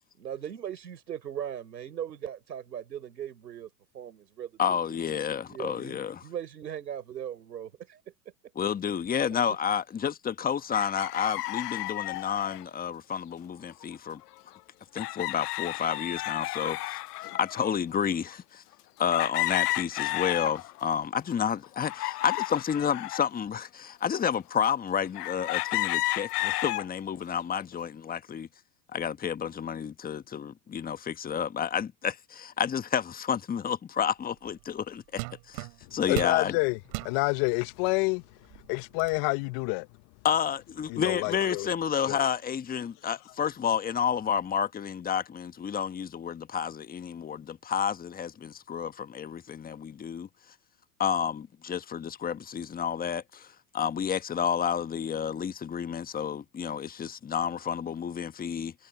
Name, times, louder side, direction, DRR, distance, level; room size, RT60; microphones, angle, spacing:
voice 1, 0.2-4.8 5.5-8.0, right 9 dB, 85° right, 5.0 m, -39 dB
voice 2, 4.6-6.2 8.5-14.2 14.9-18.6 19.0-28.5 28.9-35.2 35.5-36.6 40.2-50.3 51.0-58.7, left 8 dB, 20° left, 1.3 m, -30 dB
sound 1, 10.7-12.6 13.8-13.9 14.2-14.3 14.9-17.7 18.3-18.4 19.1-20.9 21.3-23.3 23.9-24.0 25.1-26.9 27.4-27.8, left 19 dB, 70° left, 0.6 m, -32 dB
sound 2, 34.5-34.7 35.2-36.4 36.9-37.2 37.9-38.0 38.4-39.2, right 31 dB, 55° right, 4.9 m, -37 dB
voice 3, 36.1-38.2 38.7-39.9 40.9-41.7 42.1-42.2, left 28 dB, 45° left, 1.3 m, -28 dB
hypercardioid pair, 100°, 49 cm